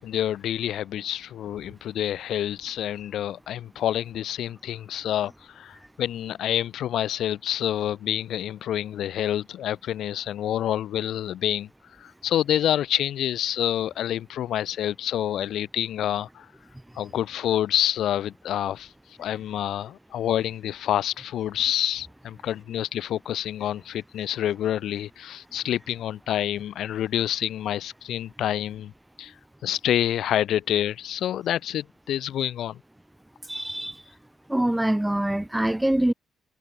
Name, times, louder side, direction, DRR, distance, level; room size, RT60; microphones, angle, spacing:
voice 1, 0.0-11.7 12.0-16.5 17.0-18.9 19.2-28.9 29.2-29.3 29.6-32.8, left 11 dB, 75° left, 7.3 m, -27 dB
voice 2, 33.5-34.0 34.5-36.1, right 1 dB, 5° right, 7.1 m, -24 dB
cardioid pair, 90°, 0 cm